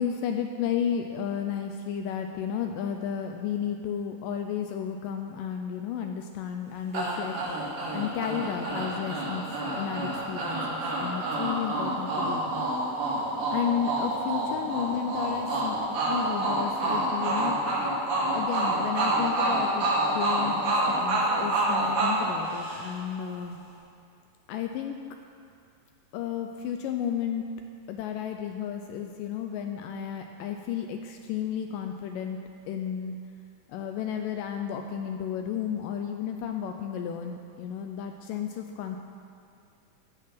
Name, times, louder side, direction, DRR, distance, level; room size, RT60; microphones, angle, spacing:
voice 1, 0.0-12.7 13.5-15.8 16.0-17.6 18.3-19.9 20.1-23.6 24.5-25.0 26.1-27.5 27.9-32.4 32.7-33.2 33.7-39.0, left 8 dB, 85° left, 5 dB, 1.9 m, -33 dB
sound 1, 6.9-23.1, right 1 dB, 75° right, 5.0 m, -28 dB
15.0 x 6.6 x 5.9 m, 2.3 s
omnidirectional pair, 4.3 m